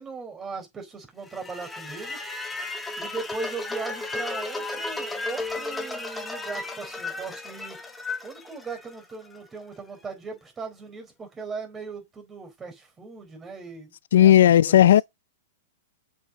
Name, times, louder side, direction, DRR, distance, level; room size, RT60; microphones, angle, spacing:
voice 1, 0.0-2.2 3.0-7.8 8.2-15.0, right 4 dB, 20° right, 4.1 m, -38 dB
sound 1, 1.3-9.4, left 2 dB, 5° left, 1.6 m, -34 dB
voice 2, 14.1-15.0, left 11 dB, 70° left, 0.4 m, -14 dB
7.5 x 5.6 x 5.1 m
hypercardioid pair, 120°, 0 cm